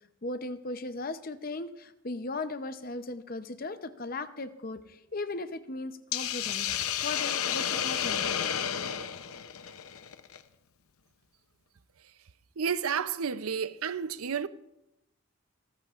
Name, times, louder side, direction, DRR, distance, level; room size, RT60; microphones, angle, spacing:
voice 1, 0.2-8.3 8.6-8.7, left 2 dB, 40° left, 0.7 m, -37 dB
Hiss, 6.1-10.4, left 9 dB, 90° left, 0.7 m, -31 dB
voice 2, 12.6-14.5, right 7 dB, 90° right, 0.6 m, -31 dB
28.0 x 13.5 x 2.5 m
head